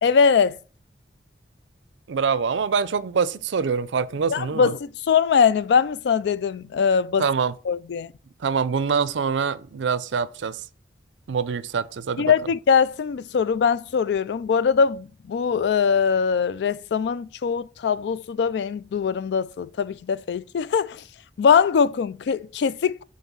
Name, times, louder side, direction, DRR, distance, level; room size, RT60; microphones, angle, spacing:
voice 1, 0.0-0.6 4.3-7.3 7.7-8.1 12.2-21.0 21.4-23.0, left 6 dB, 65° left, 0.3 m, -22 dB
voice 2, 2.1-4.7 7.2-7.5 8.4-10.6 11.3-12.3, right 6 dB, 90° right, 0.5 m, -25 dB
5.5 x 4.1 x 5.9 m
head